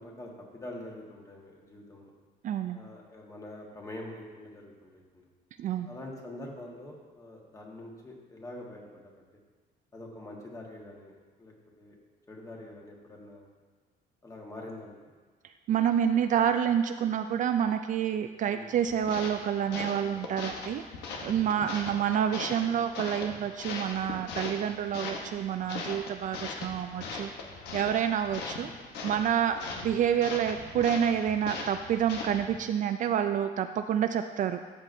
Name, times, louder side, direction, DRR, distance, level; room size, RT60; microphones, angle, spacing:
voice 1, 0.0-2.1 2.7-5.3 5.8-9.2 9.9-11.1 11.4-11.9 12.3-13.5 14.2-15.0 18.5-18.7 21.6-21.7, left 1 dB, 20° left, -1 dB, 1.6 m, -45 dB
voice 2, 2.4-2.8 5.6-5.9 15.7-20.8 21.2-27.3 27.7-28.7 29.0-34.6, right 9 dB, 50° right, 8 dB, 0.4 m, -28 dB
sound 1, 18.8-32.7, left 4 dB, 85° left, 1.0 m, -40 dB
13.5 x 5.9 x 2.7 m, 1.4 s
cardioid pair, 110°, 17 cm